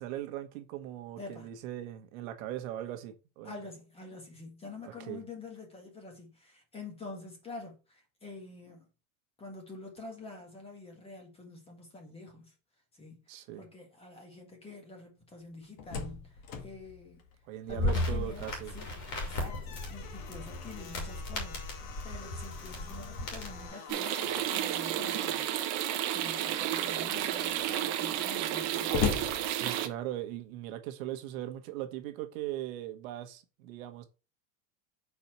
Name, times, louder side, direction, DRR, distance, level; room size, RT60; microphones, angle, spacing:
voice 1, 0.0-3.5 4.8-5.2 13.3-13.7 17.5-18.7 29.5-34.0, right 13 dB, 70° right, 1.2 m, -39 dB
voice 2, 1.2-1.5 3.4-8.9 9.4-12.5 12.9-17.2 17.7-25.5 26.1-29.1, left 3 dB, 15° left, 1.5 m, -47 dB
Slam, 15.5-18.3 18.6-18.7 19.2-24.8 25.7-26.3 26.8-26.9 27.1-30.2, left 6 dB, 70° left, 1.7 m, -40 dB
sound 1, 17.7-23.7, left 2 dB, 45° left, 2.5 m, -36 dB
sound 2, 23.9-29.9, right 11 dB, 40° right, 0.8 m, -32 dB
4.7 x 4.2 x 5.8 m
cardioid pair, 175°, 42 cm